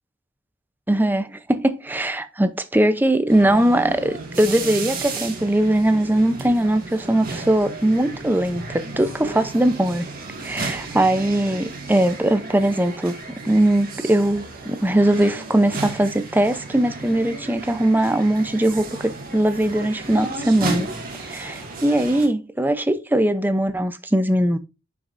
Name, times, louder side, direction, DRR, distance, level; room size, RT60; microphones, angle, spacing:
voice 1, 0.9-10.0 10.4-13.2 13.4-20.9 21.2-24.6, right 1 dB, 10° right, 0.6 m, -20 dB
sound 1, 3.3-22.3, right 3 dB, 45° right, 2.0 m, -34 dB
9.7 x 5.9 x 2.6 m
head